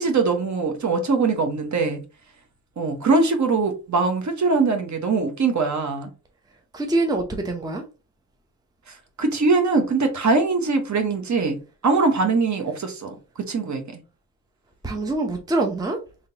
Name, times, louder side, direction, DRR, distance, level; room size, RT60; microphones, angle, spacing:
voice 1, 0.0-2.0 2.8-6.1 8.9-13.1 13.5-14.0, right 4 dB, 40° right, 1.2 m, -22 dB
voice 2, 6.7-7.8 14.8-16.0, right 2 dB, 10° right, 0.8 m, -24 dB
3.8 x 3.4 x 2.8 m
supercardioid pair, 60°, 45 cm